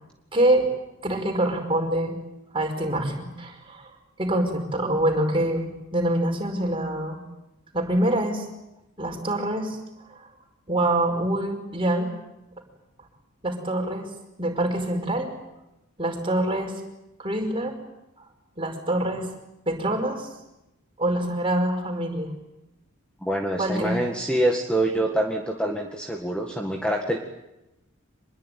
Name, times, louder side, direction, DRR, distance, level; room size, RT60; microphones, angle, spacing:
voice 1, 0.3-0.7 1.0-2.2 2.5-3.9 4.2-7.2 7.7-8.5 9.0-10.3 10.7-12.1 13.4-14.1 14.4-15.3 16.0-16.8 17.2-17.8 18.2-18.3 18.6-19.3 19.7-20.3 21.0-22.3 23.6-24.0, right 1 dB, 25° right, 3 dB, 5.2 m, -25 dB
voice 2, 23.2-27.2, right 1 dB, 5° left, 1 dB, 1.9 m, -25 dB
25.5 x 21.5 x 9.4 m, 0.94 s
head